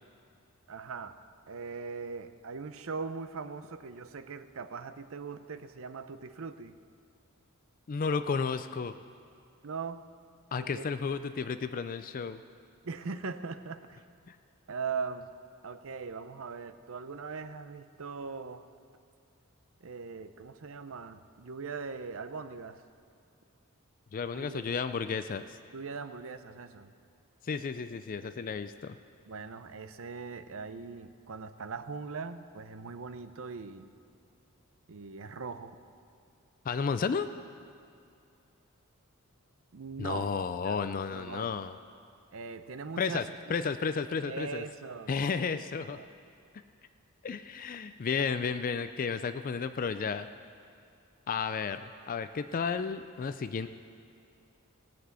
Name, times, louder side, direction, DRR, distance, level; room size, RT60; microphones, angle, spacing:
voice 1, 0.7-1.2 1.5-6.7 9.6-10.0 10.5-10.9 12.8-14.0 14.7-15.3 15.6-18.7 19.8-22.8 24.3-24.6 25.7-26.9 29.3-33.9 34.9-35.8 39.7-40.3 40.6-40.8 41.1-41.5 42.3-43.5 44.2-45.1 45.5-45.6 45.9-46.1, right 5 dB, 65° right, 11 dB, 0.6 m, -40 dB
voice 2, 7.9-8.9 10.5-12.4 14.3-14.4 24.1-25.6 27.4-29.0 36.7-37.3 40.0-41.7 43.0-44.6 45.1-46.0 47.2-50.3 51.3-53.7, left 5 dB, 40° left, 11 dB, 0.4 m, -32 dB
18.0 x 6.1 x 8.2 m, 2.5 s
head